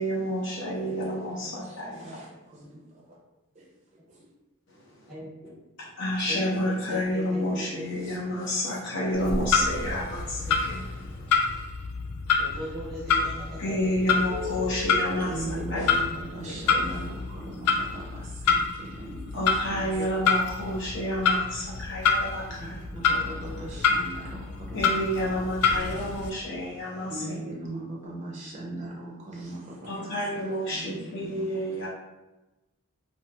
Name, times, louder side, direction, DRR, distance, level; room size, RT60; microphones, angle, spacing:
voice 1, 0.0-2.1 5.8-10.9 13.6-15.4 15.7-15.8 19.3-22.8 24.7-27.4 29.8-31.9, equal, 55° left, -5 dB, 0.7 m, -30 dB
voice 2, 0.8-2.8 3.1-3.2 3.6-3.7 4.1-4.2 7.9-8.1 11.1-11.3 15.2-20.0 22.9-25.4 25.7-26.1 27.1-30.1 30.7-31.6, right 1 dB, 30° right, -4 dB, 0.4 m, -40 dB
voice 3, 5.1-5.5 6.2-7.9 10.2-10.5 12.4-14.4 19.8-20.1 20.4-20.5 23.1-23.7 24.3-24.5, equal, ahead, -10 dB, 1.0 m, -40 dB
Clock, 9.1-26.3, left 5 dB, 90° left, 0.4 m, -28 dB
2.9 x 2.7 x 2.2 m, 1.0 s
head